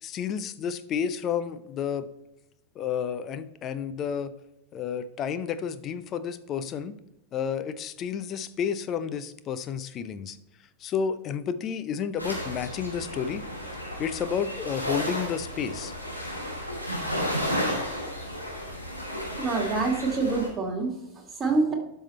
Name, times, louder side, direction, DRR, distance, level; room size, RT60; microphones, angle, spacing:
voice 1, 0.0-2.1 2.8-4.3 4.7-6.9 7.3-10.4 10.8-13.4 14.0-15.9, left 7 dB, 30° left, 13 dB, 0.6 m, -31 dB
sound 1, 12.2-20.5, equal, 85° left, 3.2 m, -33 dB
voice 2, 19.4-21.7, right 3 dB, 15° right, 0 dB, 2.4 m, -26 dB
12.0 x 5.6 x 4.4 m, 0.85 s
figure-of-eight pair, 90°, 0 cm